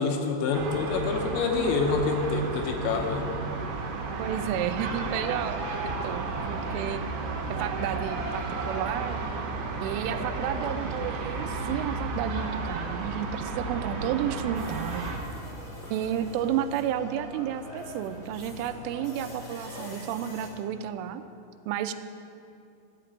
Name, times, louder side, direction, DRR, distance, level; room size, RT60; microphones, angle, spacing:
voice 1, 0.0-3.3, left 4 dB, 80° left, 3 dB, 3.0 m, -27 dB
sound 1, 0.5-15.2, right 3 dB, 70° right, 2.0 m, -33 dB
voice 2, 4.2-7.0 7.5-9.2 9.8-15.1 15.9-21.2 21.7-21.9, right 10 dB, 85° right, 10 dB, 3.0 m, -32 dB
sound 2, 14.5-20.5, left 1 dB, 55° left, 0.9 m, -43 dB
11.5 x 5.8 x 9.0 m, 2.5 s
omnidirectional pair, 5.5 m